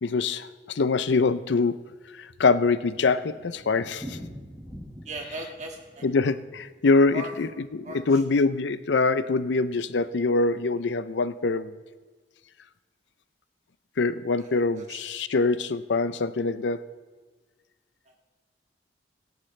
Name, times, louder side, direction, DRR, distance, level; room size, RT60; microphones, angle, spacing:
voice 1, 0.0-1.8 2.1-4.2 6.0-11.7 14.0-16.9, left 3 dB, 80° left, 14 dB, 0.5 m, -24 dB
Thunder, 2.1-8.4 8.6-8.7 9.0-9.1 9.4-9.5 10.0-10.4, equal, 10° right, 1.6 m, -45 dB
voice 2, 5.1-6.0 7.1-7.3 7.9-8.0 14.4-15.0, right 2 dB, 40° right, 1 dB, 1.8 m, -38 dB
23.5 x 10.5 x 3.2 m, 1.4 s
head